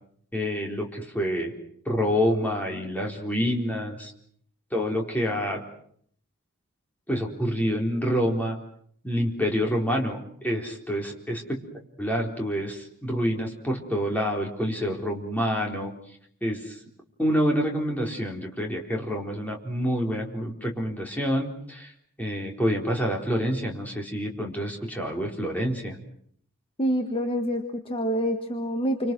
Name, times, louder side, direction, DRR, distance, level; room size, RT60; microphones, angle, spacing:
voice 1, 0.3-1.5 1.9-4.1 4.7-5.6 7.1-8.6 9.0-11.6 12.0-15.9 16.4-16.8 17.2-21.9 22.2-26.0, equal, 5° left, 0 dB, 4.1 m, -27 dB
voice 2, 26.8-29.1, equal, 25° left, 5 dB, 1.6 m, -27 dB
28.5 x 26.0 x 6.2 m, 0.63 s
head